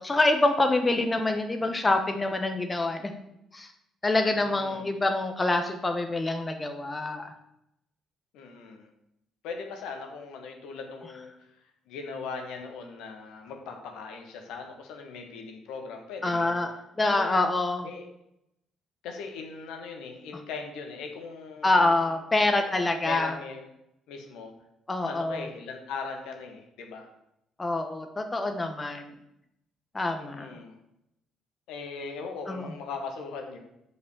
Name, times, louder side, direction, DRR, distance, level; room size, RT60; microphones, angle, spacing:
voice 1, 0.0-3.1 3.5-3.7 4.0-7.3 16.2-16.7 17.0-17.9 21.6-23.3 24.9-25.4 27.6-29.1 29.9-30.5 32.5-32.7, left 2 dB, 25° left, 5 dB, 1.1 m, -26 dB
voice 2, 4.4-4.9 8.3-8.9 9.4-11.5 11.9-16.6 17.0-17.4 17.8-18.1 19.0-22.0 23.0-23.7 24.1-24.5 25.1-27.1 30.2-30.8 31.7-33.6, left 5 dB, 65° left, 3 dB, 1.4 m, -39 dB
6.6 x 5.5 x 6.7 m, 0.80 s
figure-of-eight pair, 45°, 0 cm